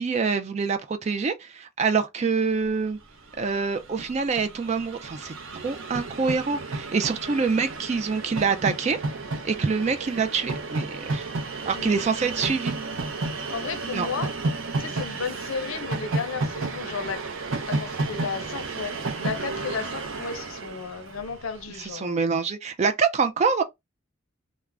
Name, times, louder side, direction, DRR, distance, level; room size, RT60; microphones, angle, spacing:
voice 1, 0.0-3.0 3.4-5.3 5.6-9.0 9.4-11.3 11.7-12.8 13.9-14.1 21.8-23.6, right 5 dB, 30° right, 0.3 m, -25 dB
Train, 3.0-3.1 3.2-21.6, right 3 dB, 75° right, 0.6 m, -32 dB
voice 2, 13.5-14.3 14.8-17.2 17.7-22.2, left 5 dB, 80° left, 0.6 m, -34 dB
2.4 x 2.1 x 3.2 m
head